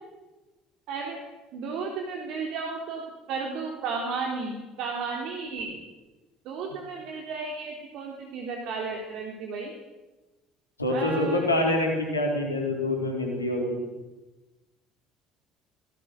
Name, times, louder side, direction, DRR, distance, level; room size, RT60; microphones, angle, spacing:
voice 1, 0.9-1.2 1.5-3.0 3.3-5.8 6.5-9.7 10.9-11.5, right 4 dB, 55° right, 0 dB, 3.6 m, -33 dB
voice 2, 10.8-13.8, left 1 dB, 85° left, 1 dB, 4.2 m, -26 dB
26.0 x 18.5 x 6.7 m, 1.1 s
figure-of-eight pair, 55°, 0 cm